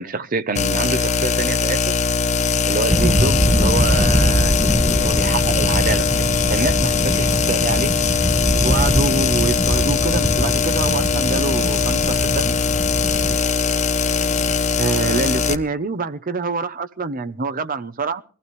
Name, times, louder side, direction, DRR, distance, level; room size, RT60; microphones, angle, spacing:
voice 1, 0.0-2.0 2.6-6.1 6.5-7.9 8.6-12.5 14.8-18.2, right 4 dB, 45° right, 13 dB, 0.7 m, -26 dB
sound 1, 0.6-15.6, left 5 dB, 35° left, 0.8 m, -20 dB
sound 2, 2.9-13.4, equal, 10° left, 1.0 m, -23 dB
22.5 x 15.0 x 3.2 m, 0.40 s
head